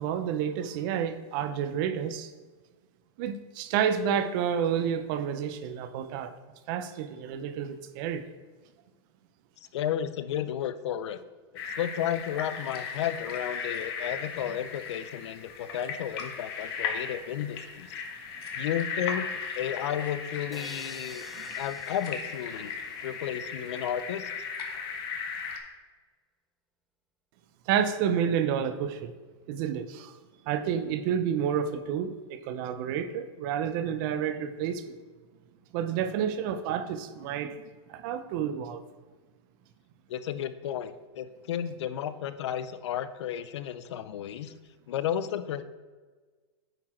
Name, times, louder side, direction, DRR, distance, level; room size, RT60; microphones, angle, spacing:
voice 1, 0.0-2.3 3.2-6.3 6.7-8.2 21.3-21.5 27.7-29.1 29.5-30.2 30.5-35.0 35.7-38.8, right 8 dB, 45° right, 10 dB, 0.6 m, -30 dB
voice 2, 9.7-11.2 11.8-17.9 18.5-19.3 19.6-21.3 21.6-22.7 23.0-24.3 40.1-44.5 44.9-45.6, left 10 dB, 80° left, 13 dB, 0.5 m, -33 dB
sound 1, 11.6-25.6, left 5 dB, 60° left, 1.2 m, -37 dB
sound 2, 20.5-23.4, equal, ahead, 0.4 m, -48 dB
9.0 x 4.0 x 4.3 m, 1.4 s
supercardioid pair, 140°, 14 cm